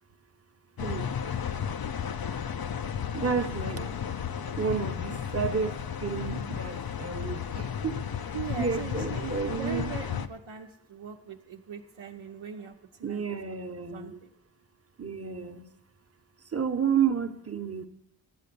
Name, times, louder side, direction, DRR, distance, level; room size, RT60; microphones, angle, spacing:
sound 1, 0.8-10.3, left 8 dB, 45° left, 0.7 m, -33 dB
voice 1, 3.1-3.8 4.3-8.2 8.6-9.9 13.0-14.2 15.0-15.6 16.5-17.9, right 6 dB, 30° right, 7 dB, 1.1 m, -31 dB
voice 2, 8.3-12.7 13.0-13.4 13.9-14.3, right 7 dB, 70° right, 0 dB, 0.9 m, -40 dB
12.0 x 7.6 x 6.8 m, 0.88 s
cardioid pair, 45°, 50 cm